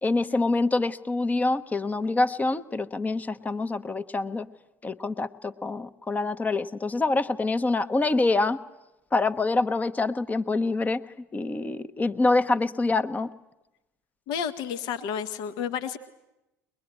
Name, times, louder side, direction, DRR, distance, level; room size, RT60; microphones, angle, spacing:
voice 1, 0.0-4.5 4.8-8.6 9.1-11.0 11.3-13.3, left 3 dB, 15° left, 11 dB, 1.0 m, -26 dB
voice 2, 14.3-16.0, left 8 dB, 55° left, 9 dB, 1.3 m, -31 dB
22.5 x 22.0 x 10.0 m, 0.94 s
figure-of-eight pair, 65°, 9 cm